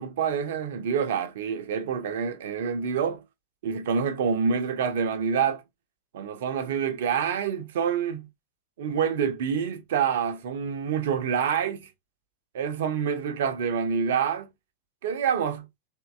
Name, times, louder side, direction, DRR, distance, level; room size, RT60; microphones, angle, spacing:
voice 1, 0.0-3.2 3.6-5.6 6.1-8.3 8.8-11.9 12.5-14.5 15.0-15.7, right 7 dB, 55° right, 0.6 m, -27 dB
3.6 x 2.9 x 2.3 m
figure-of-eight pair, 90°, 0 cm